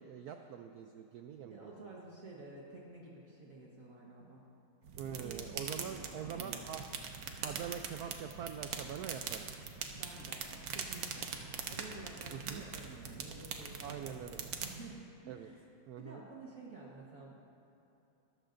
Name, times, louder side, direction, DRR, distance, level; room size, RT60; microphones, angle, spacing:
voice 1, 0.0-1.9 5.0-6.9 7.4-9.5 12.3-12.6 13.8-14.6 15.3-15.5 15.9-16.2, right 8 dB, 90° right, 6 dB, 0.8 m, -44 dB
voice 2, 1.4-4.4 4.9-6.6 7.5-7.6 9.9-10.5 10.7-11.3 11.7-14.3 14.6-15.6 16.0-17.4, right 3 dB, 45° right, -4 dB, 1.5 m, -51 dB
sound 1, 4.8-14.7, right 6 dB, 70° right, 1.6 m, -43 dB
19.5 x 13.5 x 2.6 m, 2.9 s
omnidirectional pair, 2.2 m